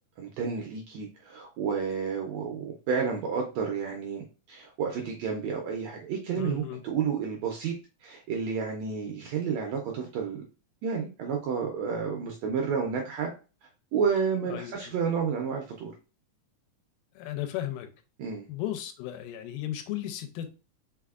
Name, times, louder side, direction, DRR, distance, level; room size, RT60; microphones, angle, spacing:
voice 1, 0.2-7.7 8.0-10.4 10.8-13.3 13.9-15.9 18.2-18.4, right 6 dB, 80° right, 1.6 m, -31 dB
voice 2, 6.4-6.8 14.5-14.9 17.2-17.9 18.5-20.5, left 12 dB, 85° left, 2.1 m, -35 dB
4.9 x 3.4 x 2.3 m
omnidirectional pair, 3.7 m